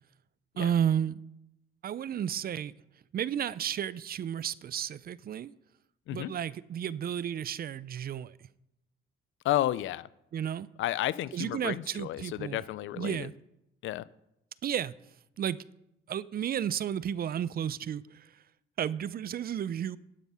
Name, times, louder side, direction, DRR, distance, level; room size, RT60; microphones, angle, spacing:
voice 1, 0.6-1.2 1.8-2.7 3.1-5.5 6.1-8.3 10.3-10.7 11.3-12.6 13.0-13.3 14.6-14.9 15.4-15.6 16.1-18.3 18.8-20.0, right 9 dB, 50° right, 0.5 m, -32 dB
voice 2, 9.4-10.1 10.8-13.3 13.8-14.1, left 14 dB, 75° left, 0.5 m, -32 dB
11.5 x 8.2 x 5.6 m
cardioid pair, 90°, 20 cm